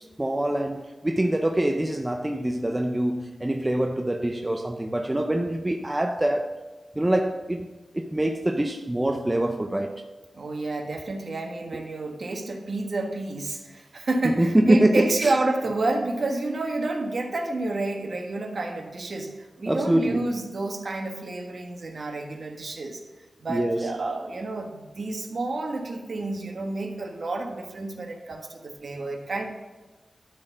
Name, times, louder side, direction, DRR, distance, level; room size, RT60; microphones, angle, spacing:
voice 1, 0.2-6.6 7.0-7.7 7.9-10.0 11.7-11.8 14.4-15.3 19.7-20.3 23.5-23.9, right 1 dB, 15° right, 0.5 m, -24 dB
voice 2, 10.3-23.0 23.4-29.4, right 2 dB, 50° right, 1.5 m, -29 dB
12.0 x 4.1 x 6.7 m
wide cardioid pair, 105°, 0 cm